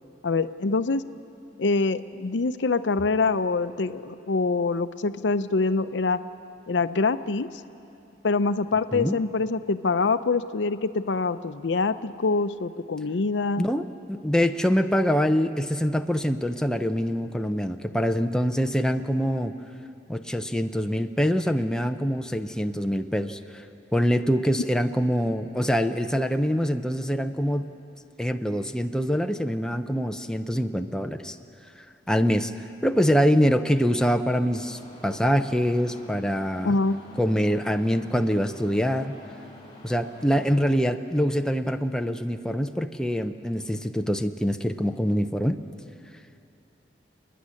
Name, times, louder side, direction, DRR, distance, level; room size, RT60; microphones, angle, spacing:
voice 1, 0.2-1.0 1.6-6.2 6.7-7.5 8.2-13.7 36.6-37.0, left 3 dB, 90° left, 12 dB, 0.6 m, -25 dB
voice 2, 13.6-19.6 20.1-23.4 23.9-27.7 28.2-31.4 32.1-32.5 32.8-36.8 37.2-39.1 39.8-45.6, equal, 5° left, 6 dB, 0.6 m, -24 dB
sound 1, 34.5-40.6, left 1 dB, 25° left, 5.0 m, -47 dB
29.5 x 10.0 x 9.7 m, 2.8 s
head